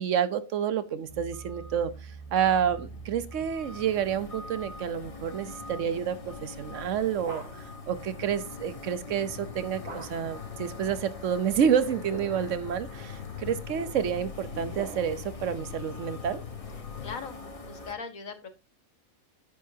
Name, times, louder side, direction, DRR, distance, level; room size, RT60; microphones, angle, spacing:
voice 1, 0.0-1.9 2.3-7.4 7.9-16.4, right 8 dB, 70° right, 14 dB, 1.2 m, -29 dB
sound 1, 1.1-17.9, left 1 dB, 30° left, 1.1 m, -44 dB
sound 2, 2.3-17.2, left 10 dB, 60° left, 1.0 m, -45 dB
sound 3, 7.1-7.8 9.8-10.4 11.8-12.6 13.4-15.4, right 2 dB, 90° right, 2.6 m, -45 dB
voice 2, 16.7-18.5, left 5 dB, 85° left, 8 dB, 2.1 m, -40 dB
9.9 x 8.1 x 2.8 m, 0.25 s
omnidirectional pair, 1.4 m